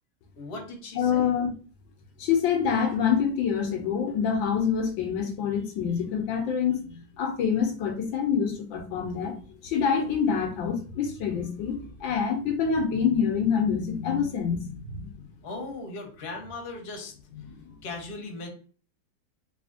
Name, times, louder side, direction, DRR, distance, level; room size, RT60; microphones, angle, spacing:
voice 1, 0.4-1.4 5.6-5.7 15.4-17.1 17.8-18.5, left 3 dB, 40° left, 1.0 m, -38 dB
voice 2, 1.0-1.5 2.2-9.4 9.6-15.1 17.6-17.7, left 7 dB, 80° left, 1.4 m, -26 dB
4.1 x 2.7 x 2.6 m
omnidirectional pair, 2.1 m